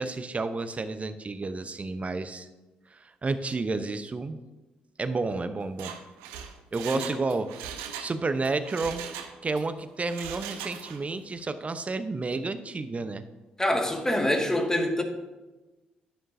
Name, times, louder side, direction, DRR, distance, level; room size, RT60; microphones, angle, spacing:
voice 1, 0.0-2.5 2.9-4.4 5.0-5.9 6.7-7.5 8.0-9.1 9.4-13.2, right 3 dB, 35° right, 11 dB, 0.8 m, -31 dB
Mechanisms, 5.6-8.1 8.4-9.6 10.0-11.1 11.4-11.5, right 8 dB, 80° right, 0.7 m, -39 dB
voice 2, 13.6-15.0, left 1 dB, 15° left, 3 dB, 1.8 m, -25 dB
11.0 x 9.3 x 2.7 m, 1.2 s
hypercardioid pair, 45°, 4 cm